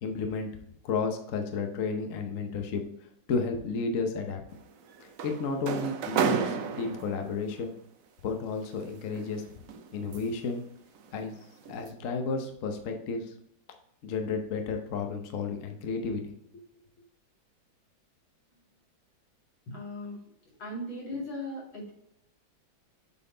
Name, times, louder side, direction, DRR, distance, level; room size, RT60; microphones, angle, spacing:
voice 1, 0.0-0.5 0.8-2.8 3.3-4.4 5.0-7.7 8.2-9.6 9.9-10.6 11.1-11.3 11.7-13.3 14.0-16.6, left 4 dB, 55° left, 4 dB, 0.9 m, -32 dB
sound 1, 4.5-7.5 8.6-10.5 10.9-11.2 11.6-11.9, right 6 dB, 80° right, 0.7 m, -32 dB
voice 2, 19.7-21.9, left 1 dB, 70° left, -4 dB, 3.2 m, -38 dB
7.5 x 4.1 x 3.8 m, 0.77 s
omnidirectional pair, 2.2 m